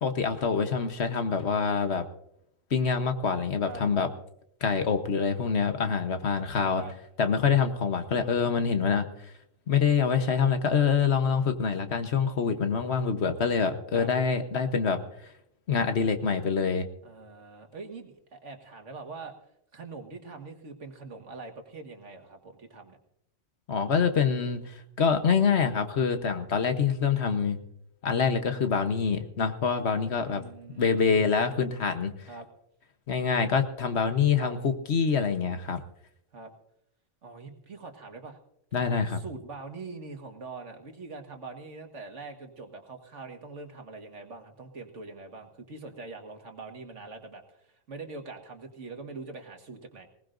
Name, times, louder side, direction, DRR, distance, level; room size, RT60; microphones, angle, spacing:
voice 1, 0.0-2.0 2.7-4.1 4.6-6.8 7.2-9.1 9.7-15.0 15.7-16.9 23.7-27.6 28.0-30.4 30.7-32.1 33.1-35.8 38.7-39.2, left 6 dB, 60° left, 8 dB, 1.3 m, -25 dB
voice 2, 17.0-19.4 19.7-23.0 30.2-31.4 32.3-32.5 34.4-34.5 36.3-36.5 37.2-38.4 39.1-50.1, right 3 dB, 70° right, 5 dB, 2.0 m, -43 dB
20.5 x 18.5 x 2.6 m, 0.76 s
omnidirectional pair, 1.3 m